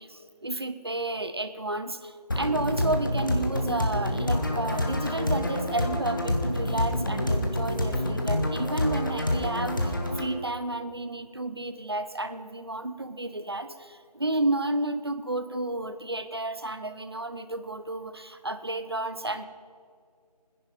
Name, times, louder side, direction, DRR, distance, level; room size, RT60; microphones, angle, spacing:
voice 1, 0.0-19.5, right 2 dB, 40° right, 11 dB, 0.7 m, -32 dB
sound 1, 2.3-10.3, left 1 dB, 30° left, 1.4 m, -27 dB
19.5 x 10.5 x 5.4 m, 2.1 s
figure-of-eight pair, 170°, 21 cm